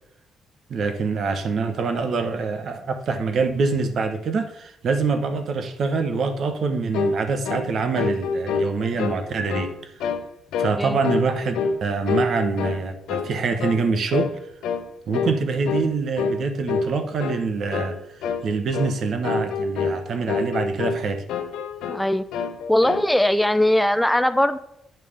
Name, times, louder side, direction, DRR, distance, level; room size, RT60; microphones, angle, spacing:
voice 1, 0.7-9.7 10.6-11.6 11.8-14.4 15.1-18.0 18.4-21.2, right 4 dB, 60° right, 1.1 m, -25 dB
sound 1, 6.9-7.2 7.4-7.7 8.0-9.2 9.5-9.7 10.0-10.3 10.5-10.8 11.0-11.8 12.1-12.8 13.1-13.3 13.6-13.8 14.1-14.3 14.6-14.8 15.1-15.4 15.7-15.9 16.2-16.4 16.7-16.9 17.2-17.4 17.7-18.0 18.2-18.4 18.7-18.9 19.2-20.0 20.3-21.0 21.3-22.0 22.3-23.1, left 5 dB, 85° left, 0.9 m, -26 dB
voice 2, 21.9-22.2 22.7-24.6, left 1 dB, 5° left, 0.4 m, -20 dB
9.3 x 3.6 x 6.5 m
cardioid pair, 90°, 0 cm